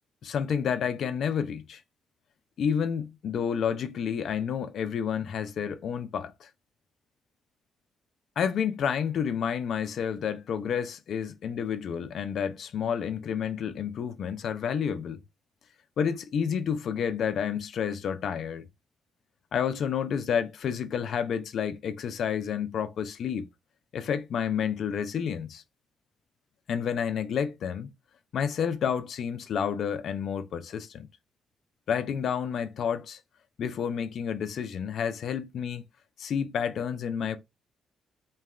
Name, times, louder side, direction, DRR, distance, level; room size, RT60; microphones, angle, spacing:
voice 1, 0.2-1.8 2.6-6.5 8.4-15.2 16.0-18.7 19.5-23.5 23.9-25.6 26.7-27.9 28.3-31.1 31.9-33.2 33.6-35.8 36.2-37.4, left 7 dB, 65° left, 0.4 m, -30 dB
3.1 x 2.2 x 2.3 m
cardioid pair, 90°, 0 cm